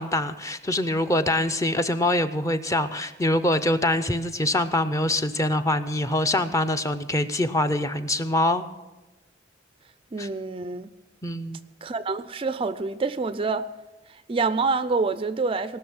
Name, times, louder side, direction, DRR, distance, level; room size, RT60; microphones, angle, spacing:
voice 1, 0.0-8.6 10.2-10.3 11.2-11.6, left 1 dB, 15° left, 9 dB, 0.6 m, -24 dB
voice 2, 10.1-10.9 11.8-13.7 14.1-15.8, right 4 dB, 30° right, 13 dB, 0.4 m, -27 dB
18.5 x 6.5 x 8.7 m, 1.1 s
head